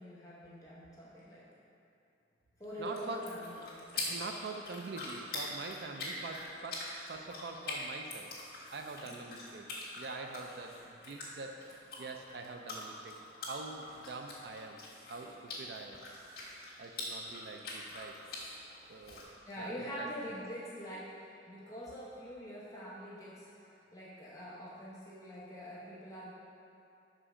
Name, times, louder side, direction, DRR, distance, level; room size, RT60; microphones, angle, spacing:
voice 1, 0.0-1.5 2.6-3.6 9.0-9.7 19.5-26.3, equal, 15° left, -8 dB, 0.8 m, -45 dB
sound 1, 2.6-19.2, left 2 dB, 50° left, 1.5 m, -44 dB
voice 2, 2.8-3.4 3.9-8.3 8.7-14.8 15.1-16.0 16.8-18.2 18.9-20.1, right 3 dB, 60° right, 4 dB, 0.4 m, -45 dB
6.1 x 5.0 x 4.9 m, 2.7 s
head